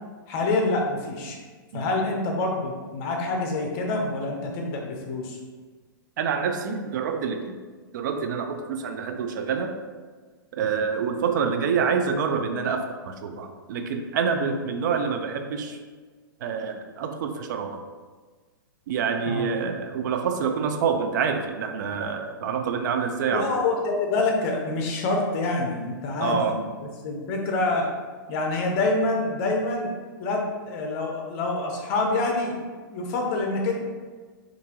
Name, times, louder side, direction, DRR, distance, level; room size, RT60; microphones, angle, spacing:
voice 1, 0.3-1.4 1.7-5.4 19.2-19.5 23.3-26.6 27.0-27.9 28.3-32.7 32.9-33.7, left 2 dB, 40° left, 1 dB, 0.7 m, -26 dB
voice 2, 6.2-7.6 7.9-9.7 10.5-15.8 16.4-17.8 18.9-23.5 26.2-26.6, right 6 dB, 60° right, 6 dB, 0.4 m, -27 dB
4.5 x 2.5 x 2.9 m, 1.4 s
hypercardioid pair, 130°, 12 cm